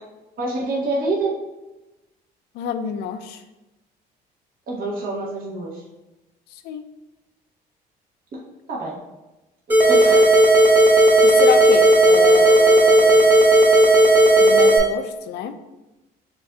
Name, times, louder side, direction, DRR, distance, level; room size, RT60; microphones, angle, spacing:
voice 1, 0.4-1.4 4.7-5.8 8.3-8.4 8.7-9.0 9.9-10.2, right 2 dB, 55° right, -4 dB, 1.2 m, -26 dB
voice 2, 2.5-3.4 6.6-6.8 9.9-10.1 10.9-13.2 14.4-15.5, left 8 dB, 75° left, 9 dB, 0.4 m, -27 dB
sound 1, 9.7-14.8, right 1 dB, 10° right, 1.2 m, -13 dB
6.7 x 2.6 x 2.3 m, 1.1 s
cardioid pair, 110°, 17 cm